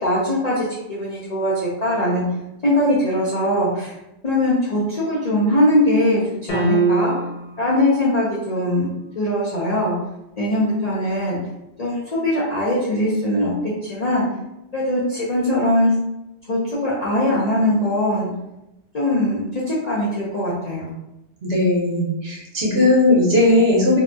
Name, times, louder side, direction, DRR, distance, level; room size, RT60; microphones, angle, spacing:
voice 1, 0.0-2.2 2.6-4.0 4.2-7.1 7.6-10.0 10.4-11.4 11.8-13.5 13.8-14.2 14.7-15.9 16.5-18.3 18.9-20.9, left 1 dB, 50° left, -7 dB, 0.5 m, -21 dB
sound 1, 6.5-7.5, right 3 dB, 70° left, 1.1 m, -21 dB
voice 2, 21.4-24.0, left 2 dB, 60° right, -3 dB, 1.0 m, -17 dB
2.7 x 2.1 x 2.5 m, 0.89 s
omnidirectional pair, 1.2 m